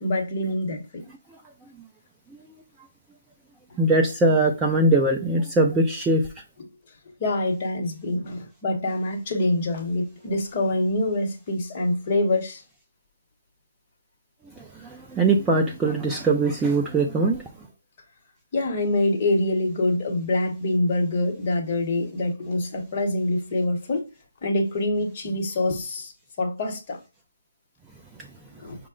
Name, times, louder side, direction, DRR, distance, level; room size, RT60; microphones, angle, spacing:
voice 1, 0.0-1.0 7.2-12.6 18.5-24.1 24.4-26.1 26.4-27.0 28.6-28.8, left 2 dB, 30° left, 0.9 m, -25 dB
voice 2, 3.8-6.2 14.6-17.4, right 2 dB, 5° right, 0.3 m, -21 dB
5.6 x 2.0 x 3.7 m
hypercardioid pair, 170°, 0 cm